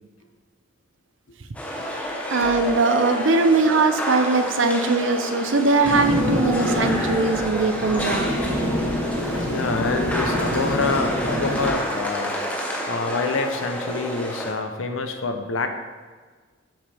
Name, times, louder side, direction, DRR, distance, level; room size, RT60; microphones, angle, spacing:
sound 1, 1.5-14.5, equal, 5° left, 0.9 m, -29 dB
voice 1, 2.3-8.3, right 3 dB, 70° right, 7 dB, 0.6 m, -20 dB
sound 2, 5.8-11.7, equal, 85° right, 1.4 m, -26 dB
voice 2, 9.3-12.4 12.9-15.7, left 3 dB, 85° left, 6 dB, 0.7 m, -26 dB
8.2 x 6.1 x 3.4 m, 1.5 s
head